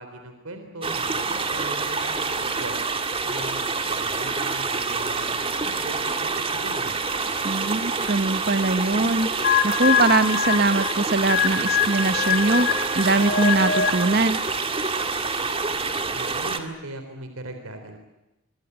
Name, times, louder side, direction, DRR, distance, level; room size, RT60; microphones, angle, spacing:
voice 1, 0.0-2.8 3.2-7.0 16.1-18.0, right 2 dB, 85° right, 6 dB, 3.6 m, -39 dB
sound 1, 0.8-16.6, right 4 dB, 25° right, 2.1 m, -27 dB
voice 2, 7.4-9.3 9.6-12.7 12.9-14.4, right 3 dB, 45° right, 13 dB, 1.1 m, -22 dB
sound 2, 9.4-14.2, left 8 dB, 45° left, 3.0 m, -24 dB
25.5 x 24.0 x 8.0 m, 1.0 s
head